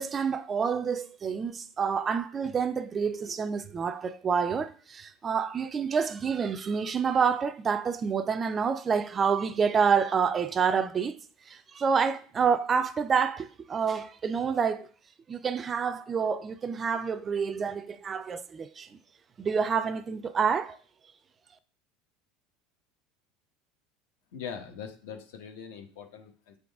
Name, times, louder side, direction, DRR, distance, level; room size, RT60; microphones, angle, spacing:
voice 1, 0.0-11.2 11.5-14.9 15.3-18.9 19.4-20.8, right 6 dB, 20° right, 0.3 m, -28 dB
voice 2, 24.3-26.6, left 7 dB, 90° left, 1.1 m, -42 dB
8.2 x 3.8 x 3.5 m
cardioid pair, 165°, 0 cm